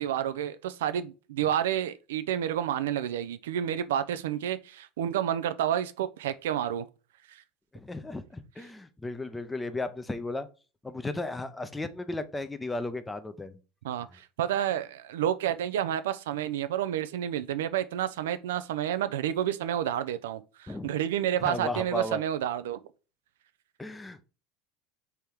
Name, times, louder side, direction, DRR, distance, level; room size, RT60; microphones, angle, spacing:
voice 1, 0.0-6.9 7.3-7.4 13.8-22.8, right 10 dB, 85° right, 0.4 m, -30 dB
voice 2, 7.7-10.5 10.8-13.6 20.7-20.9 21.4-22.3 23.8-24.2, left 2 dB, 10° left, 0.6 m, -35 dB
3.5 x 3.4 x 4.4 m
hypercardioid pair, 90°, 0 cm